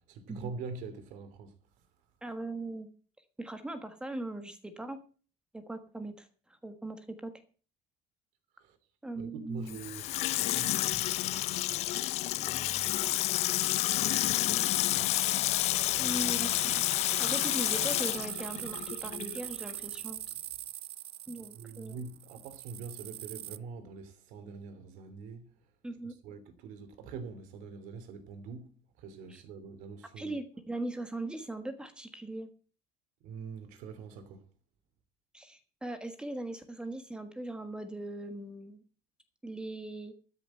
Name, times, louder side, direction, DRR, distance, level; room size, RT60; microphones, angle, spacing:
voice 1, 0.1-1.6 8.6-8.8 9.1-11.8 12.4-13.0 13.9-15.1 15.9-16.5 21.4-25.5 26.2-30.4 33.2-34.4, right 5 dB, 70° right, 2.8 m, -45 dB
voice 2, 2.2-2.9 3.4-5.0 5.5-6.3 6.6-7.3 9.0-9.8 16.0-16.5 17.2-20.2 21.3-22.0 25.8-26.1 29.3-29.4 30.2-32.5 35.3-38.8 39.4-40.1, right 2 dB, 5° right, 1.4 m, -39 dB
Water tap faucet / Sink (filling or washing), 9.7-19.4 19.7-19.8, left 16 dB, 50° left, 0.5 m, -30 dB
sound 1, 13.8-15.0 16.0-23.6, right 14 dB, 45° right, 0.5 m, -42 dB
13.0 x 6.8 x 7.8 m
cardioid pair, 160°, 14 cm